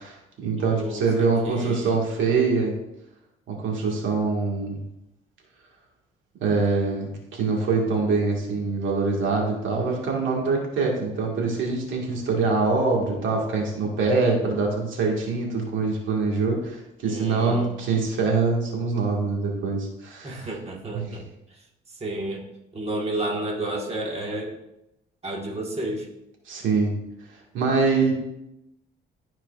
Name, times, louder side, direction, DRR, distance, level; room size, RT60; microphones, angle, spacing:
voice 1, 0.0-2.7 3.5-4.8 6.4-20.5 20.9-21.1 26.5-26.9 27.5-28.1, right 4 dB, 75° right, -1 dB, 1.8 m, -24 dB
voice 2, 0.6-2.0 17.0-17.7 20.2-21.3 22.0-22.4 22.7-24.5 25.2-26.1, right 1 dB, 30° right, -2 dB, 1.5 m, -31 dB
12.5 x 4.4 x 2.4 m, 0.89 s
cardioid pair, 90°, 20 cm